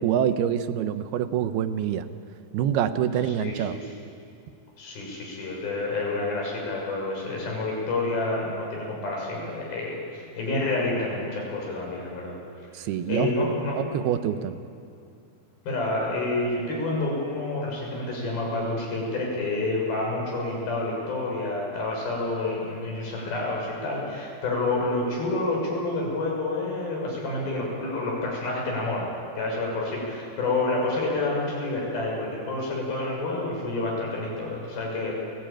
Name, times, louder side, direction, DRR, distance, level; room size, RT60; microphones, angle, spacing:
voice 1, 0.0-2.1 2.5-3.8 12.7-13.3 13.8-14.6, right 9 dB, 85° right, 10 dB, 2.9 m, -26 dB
voice 2, 3.4-3.8 4.8-12.4 13.1-13.9 15.7-29.1 29.4-35.1, left 2 dB, 70° left, -2 dB, 8.1 m, -28 dB
30.0 x 19.0 x 9.0 m, 2.5 s
omnidirectional pair, 4.4 m